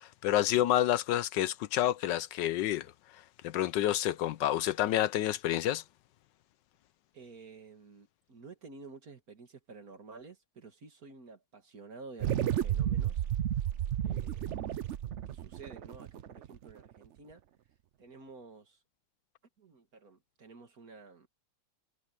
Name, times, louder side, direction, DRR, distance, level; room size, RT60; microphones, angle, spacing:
voice 1, 0.0-2.9 3.4-5.8, left 13 dB, 80° left, 1.2 m, -29 dB
voice 2, 7.1-13.2 14.0-14.8 15.3-17.4 18.0-18.8 19.6-21.3, right 4 dB, 50° right, 2.5 m, -51 dB
sound 1, 12.2-16.9, right 11 dB, 70° right, 0.6 m, -32 dB
omnidirectional pair, 2.0 m